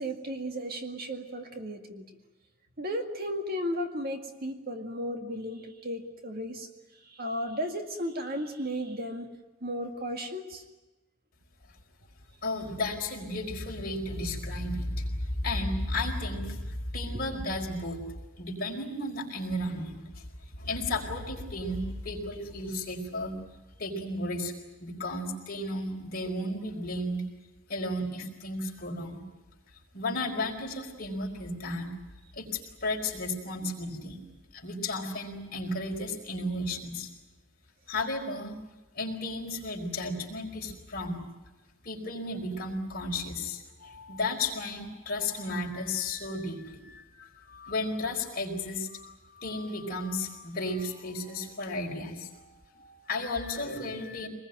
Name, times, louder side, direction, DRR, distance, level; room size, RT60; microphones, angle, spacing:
voice 1, 0.0-2.1 2.8-9.3 9.6-10.6 17.1-17.2 33.6-33.7, equal, 45° right, 5 dB, 2.1 m, -35 dB
voice 2, 12.4-18.0 18.4-23.3 23.8-24.5 24.8-27.2 27.7-29.2 29.9-31.9 32.3-34.2 34.5-37.1 37.9-38.6 38.9-41.2 41.8-54.3, left 2 dB, 45° left, 0 dB, 4.6 m, -34 dB
24.5 x 20.5 x 9.1 m, 1.1 s
head